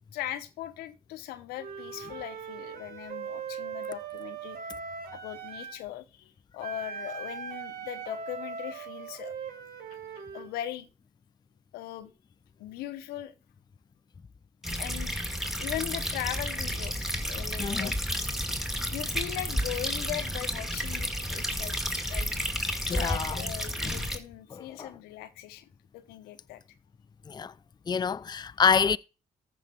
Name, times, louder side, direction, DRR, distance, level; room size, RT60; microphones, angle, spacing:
voice 1, 0.1-4.7 5.1-9.3 9.9-10.9 11.7-12.1 12.6-13.3 14.8-15.1 15.6-17.9 18.9-21.8 22.1-22.3 22.8-26.6, left 13 dB, 85° left, 1.0 m, -39 dB
Wind instrument woodwind instrument, 1.6-5.8 6.6-10.5, right 6 dB, 70° right, 1.7 m, -40 dB
sound 1, 14.6-24.2, equal, ahead, 2.2 m, -31 dB
voice 2, 17.6-17.9 22.9-23.4 23.8-24.0 24.5-24.9 27.3-27.5 27.9-29.0, left 6 dB, 25° left, 0.5 m, -27 dB
14.0 x 5.5 x 4.6 m
supercardioid pair, 50°, 16 cm